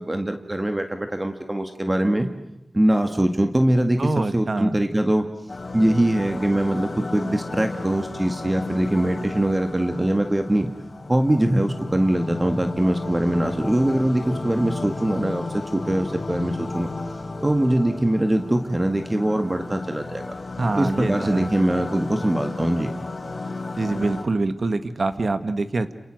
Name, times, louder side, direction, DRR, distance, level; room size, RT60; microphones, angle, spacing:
voice 1, 0.0-2.3 2.7-5.2 5.7-10.7 11.1-16.9 17.4-20.3 20.7-22.9, right 1 dB, 20° right, 6 dB, 1.9 m, -22 dB
voice 2, 4.0-4.7 20.6-21.5 23.8-25.9, right 3 dB, 60° right, 10 dB, 1.7 m, -25 dB
sound 1, 5.5-24.2, left 3 dB, 55° left, 4.3 m, -33 dB
30.0 x 28.5 x 6.5 m, 0.86 s
wide cardioid pair, 85°, 0 cm